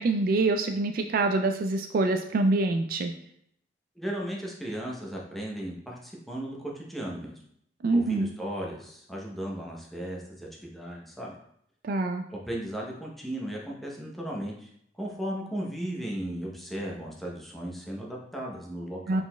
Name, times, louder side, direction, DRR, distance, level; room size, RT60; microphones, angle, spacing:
voice 1, 0.0-3.1 7.8-8.3 11.8-12.2 19.1-19.2, right 2 dB, 55° right, 5 dB, 0.3 m, -25 dB
voice 2, 4.0-7.4 7.9-11.3 12.3-14.7 14.9-19.2, right 1 dB, ahead, -3 dB, 0.7 m, -36 dB
4.6 x 3.9 x 2.2 m, 0.71 s
head